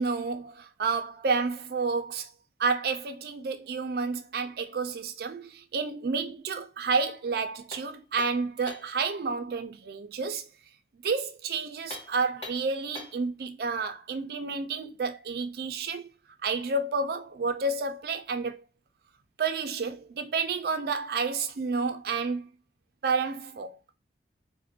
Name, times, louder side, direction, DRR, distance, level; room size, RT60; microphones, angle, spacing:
voice 1, 0.0-2.3 2.6-10.5 11.0-16.1 16.4-18.6 19.4-22.5 23.0-23.9, right 4 dB, 60° right, 0.4 m, -30 dB
sound 1, 7.7-9.0 11.8-13.3, left 2 dB, 35° left, 0.7 m, -43 dB
2.4 x 2.1 x 2.7 m
head